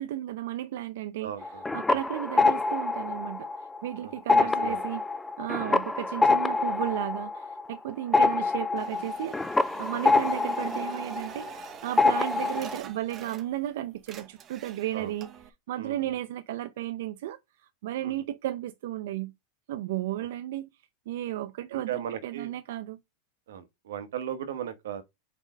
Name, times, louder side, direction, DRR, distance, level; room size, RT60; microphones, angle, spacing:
voice 1, 0.0-1.3 1.7-3.5 3.8-5.0 5.4-15.3 15.7-17.4 17.8-19.3 19.7-20.7 21.1-23.0, right 13 dB, 70° right, 0.5 m, -34 dB
voice 2, 1.2-2.0 4.0-4.8 5.6-5.8 10.2-10.3 14.9-15.1 15.8-16.2 18.0-18.1 21.7-22.5 23.5-25.0, right 9 dB, 90° right, 1.1 m, -38 dB
sound 1, 1.4-3.9 4.2-11.7 12.0-12.8, left 3 dB, 5° left, 0.4 m, -26 dB
sound 2, 8.8-13.7 14.0-15.5, right 8 dB, 25° right, 0.7 m, -45 dB
4.8 x 4.4 x 5.0 m
supercardioid pair, 160°, 0 cm